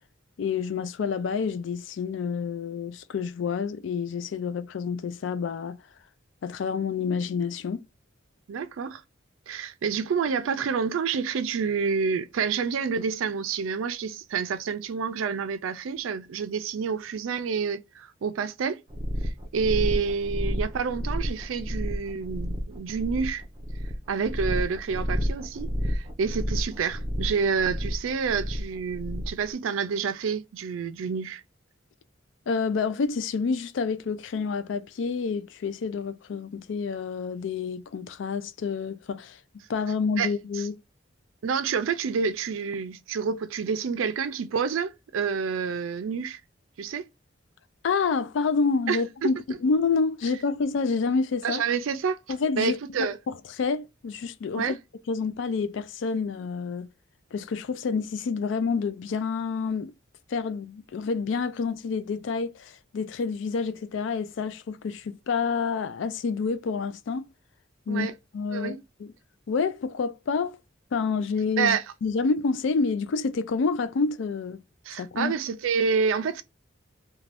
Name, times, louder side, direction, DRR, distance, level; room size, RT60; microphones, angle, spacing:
voice 1, 0.4-5.8 6.4-7.8 32.5-39.4 39.7-40.8 47.8-51.6 52.3-54.8 55.1-56.9 57.3-59.9 60.3-67.3 67.9-68.1 68.3-69.1 69.5-70.6 70.9-74.6 74.9-75.3, left 5 dB, 70° left, 0.3 m, -28 dB
voice 2, 8.5-9.0 9.5-18.8 19.2-23.4 24.1-31.4 40.2-40.3 40.6-40.7 41.4-46.4 46.8-47.1 48.9-49.3 51.4-52.2 52.6-53.2 54.5-54.7 67.9-68.1 68.5-68.8 71.6-71.8 74.9-76.4, right 6 dB, 90° right, 0.4 m, -28 dB
sound 1, 18.9-29.4, equal, 25° right, 0.5 m, -31 dB
2.5 x 2.2 x 3.2 m
head